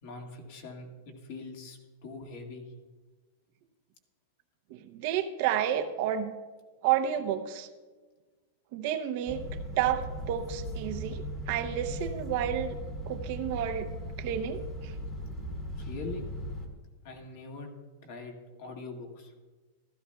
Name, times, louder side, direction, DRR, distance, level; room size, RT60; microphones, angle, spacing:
voice 1, 0.0-2.7 15.8-16.3 17.0-17.7 18.0-19.3, left 3 dB, 50° left, 2 dB, 1.8 m, -43 dB
voice 2, 4.7-6.3 6.8-7.7 8.7-9.5 9.8-12.7 13.0-13.9 14.2-14.9, right 10 dB, 45° right, 7 dB, 0.7 m, -30 dB
sound 1, 9.3-16.7, equal, 25° left, 1.7 m, -38 dB
15.0 x 13.0 x 2.3 m, 1.3 s
supercardioid pair, 165°, 0 cm